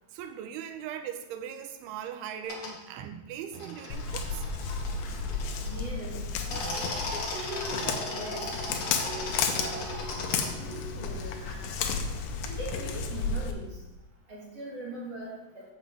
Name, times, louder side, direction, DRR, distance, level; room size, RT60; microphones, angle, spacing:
voice 1, 0.1-4.6 6.5-6.8 10.2-10.7 12.0-12.5, right 8 dB, 85° right, 7 dB, 2.8 m, -40 dB
sound 1, 2.4-2.7 3.5-5.9 6.3-10.5, left 2 dB, 55° left, 2.5 m, -37 dB
Walk footsteps, 3.9-13.5, left 5 dB, 80° left, 2.7 m, -33 dB
voice 2, 5.6-6.1 6.4-8.5 8.9-11.9 12.4-13.8 14.3-15.6, right 1 dB, 40° right, -6 dB, 3.2 m, -41 dB
Wind instrument woodwind instrument, 7.4-11.8, right 15 dB, 65° right, 2.2 m, -47 dB
8.0 x 5.1 x 7.6 m, 0.98 s
omnidirectional pair, 4.5 m